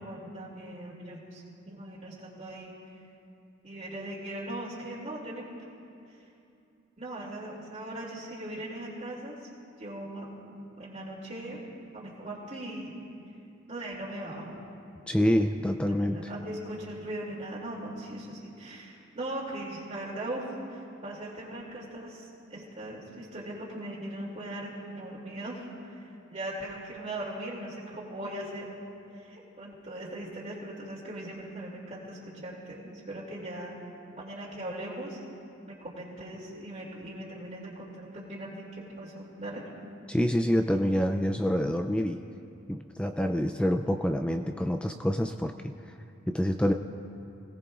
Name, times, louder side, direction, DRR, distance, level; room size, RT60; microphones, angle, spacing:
voice 1, 0.0-2.7 3.6-5.4 6.1-6.2 7.0-9.5 9.8-13.0 13.7-14.6 16.0-28.7 29.1-33.7 34.1-35.2 35.6-39.8, right 1 dB, 35° right, -8 dB, 2.6 m, -39 dB
voice 2, 15.1-16.3 40.1-42.2 42.7-45.9 46.3-46.7, equal, 5° left, 6 dB, 0.3 m, -27 dB
29.0 x 18.0 x 2.4 m, 2.7 s
head